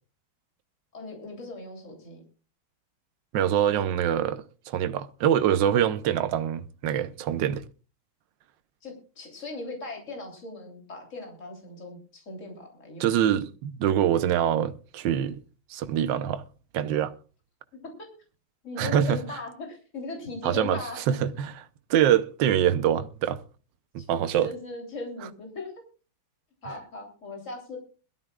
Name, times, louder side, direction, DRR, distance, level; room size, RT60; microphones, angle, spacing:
voice 1, 0.9-2.2 8.8-13.1 18.6-21.2 24.0-24.1 24.4-25.7 26.6-27.8, left 3 dB, 35° left, 3.6 m, -38 dB
voice 2, 3.3-7.6 13.0-15.4 15.7-16.4 16.7-17.1 18.8-19.2 20.4-20.8 21.1-23.4 23.9-24.5, right 10 dB, 65° right, 1.4 m, -24 dB
21.5 x 13.5 x 2.4 m
omnidirectional pair, 2.4 m